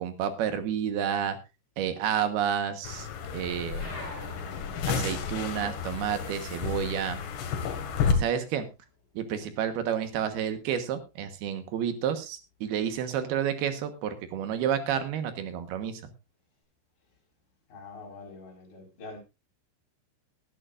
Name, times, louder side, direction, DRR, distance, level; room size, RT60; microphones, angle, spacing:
voice 1, 0.0-1.4 1.8-3.1 3.3-3.9 4.9-7.2 8.1-8.7 9.1-16.1, right 9 dB, 70° right, 2.7 m, -30 dB
sound 1, 2.8-8.1, left 6 dB, 65° left, 3.8 m, -32 dB
sound 2, 3.7-8.6 8.9-10.3, left 1 dB, 20° left, 6.5 m, -47 dB
voice 2, 17.7-19.2, left 3 dB, 50° left, 6.3 m, -44 dB
19.5 x 11.0 x 2.5 m
omnidirectional pair, 5.7 m